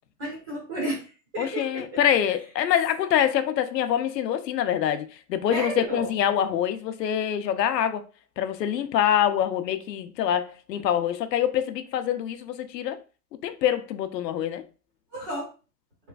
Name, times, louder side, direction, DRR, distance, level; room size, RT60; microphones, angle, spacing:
voice 1, 0.2-1.9 5.5-6.1 15.1-15.5, right 1 dB, 15° right, 0.6 m, -32 dB
voice 2, 1.4-8.0 8.4-13.0 13.4-14.6, left 10 dB, 85° left, 0.7 m, -25 dB
3.3 x 3.1 x 2.3 m
hypercardioid pair, 170°, 48 cm